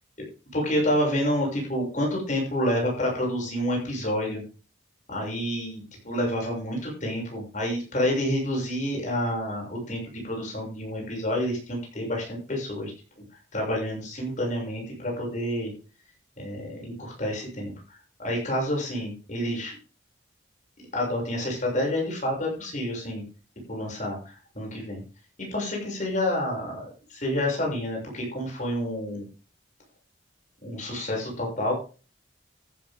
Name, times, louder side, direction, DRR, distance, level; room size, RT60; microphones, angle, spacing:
voice 1, 0.5-4.4 5.1-12.9 13.5-15.7 16.4-17.7 18.2-19.8 20.9-23.2 23.7-25.0 25.5-26.9 27.1-29.2 30.6-31.7, left 1 dB, 40° left, -1 dB, 7.0 m, -28 dB
14.5 x 10.5 x 3.8 m, 0.35 s
head